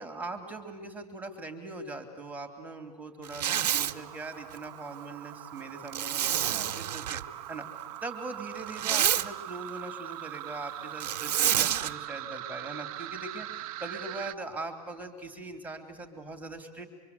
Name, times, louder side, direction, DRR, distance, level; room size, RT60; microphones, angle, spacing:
voice 1, 0.0-7.2 7.5-7.7 8.0-16.9, right 3 dB, 10° right, 6 dB, 2.7 m, -41 dB
Zipper (clothing), 3.3-3.9 5.9-7.2 8.6-9.3 11.0-11.9, right 11 dB, 75° right, 1.1 m, -28 dB
sound 1, 3.5-14.4, right 13 dB, 60° right, 0.8 m, -42 dB
25.0 x 24.0 x 8.2 m, 1.4 s
hypercardioid pair, 130°, 21 cm